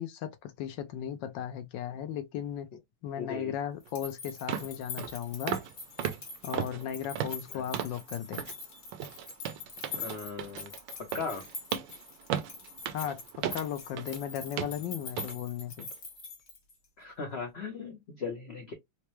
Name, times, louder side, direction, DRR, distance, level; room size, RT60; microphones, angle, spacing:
voice 1, 0.0-2.7 3.0-5.6 6.4-8.4 12.9-15.9, left 9 dB, 75° left, 1.2 m, -36 dB
voice 2, 3.2-3.5 7.5-7.7 9.9-10.7 11.1-11.4 17.0-18.7, left 5 dB, 90° left, 0.5 m, -38 dB
sound 1, 3.8-16.9, left 4 dB, 55° left, 1.8 m, -44 dB
sound 2, 3.9-4.0 4.5-4.7 5.0-5.2 5.5-5.7 6.0-8.0 8.3-8.6 8.9-14.2 14.6-14.8 15.2-15.3 15.8-15.9, right 10 dB, 75° right, 1.2 m, -36 dB
4.5 x 2.0 x 3.0 m
omnidirectional pair, 2.2 m